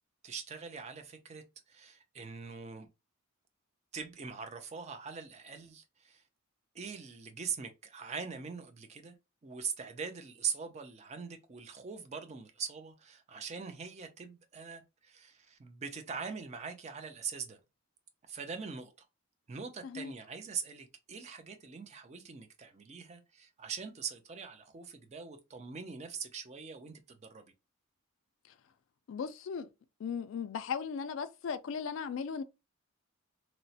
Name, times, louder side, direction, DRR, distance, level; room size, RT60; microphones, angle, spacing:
voice 1, 0.2-2.9 3.9-6.2 6.7-9.2 9.4-17.6 18.3-19.1 19.5-27.5, right 6 dB, 30° right, 0.4 m, -42 dB
voice 2, 29.1-29.7 30.0-32.4, left 6 dB, 65° left, 0.3 m, -37 dB
2.9 x 2.0 x 2.7 m
head